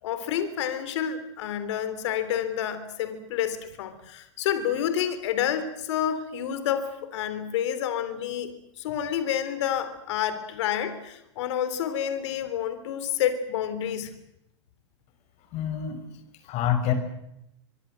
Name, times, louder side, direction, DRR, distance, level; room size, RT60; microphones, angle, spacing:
voice 1, 0.0-14.1, left 9 dB, 70° left, 12 dB, 3.5 m, -29 dB
voice 2, 15.5-16.0 16.4-16.9, left 10 dB, 45° left, 9 dB, 5.9 m, -26 dB
24.0 x 23.5 x 7.7 m, 0.83 s
hypercardioid pair, 110°, 15 cm